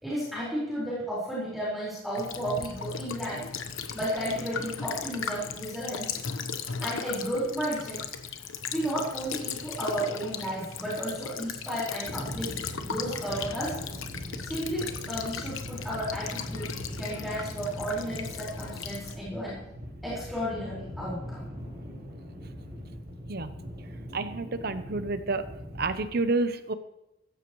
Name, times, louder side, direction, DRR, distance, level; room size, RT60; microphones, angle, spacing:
voice 1, 0.0-3.4 3.9-6.2 6.8-8.0 8.7-12.5 12.8-13.7 14.4-16.7 17.0-19.5 20.0-21.4, equal, ahead, -9 dB, 4.8 m, -33 dB
Child speech kid speaking / Bird vocalization bird call bird song / Stream, 2.1-19.1, left 6 dB, 80° left, 1.1 m, -37 dB
sound 1, 12.0-26.0, equal, 30° right, 5.2 m, -41 dB
voice 2, 24.1-25.4 25.8-26.7, right 3 dB, 50° right, 11 dB, 0.8 m, -29 dB
15.5 x 14.5 x 3.1 m, 0.90 s
head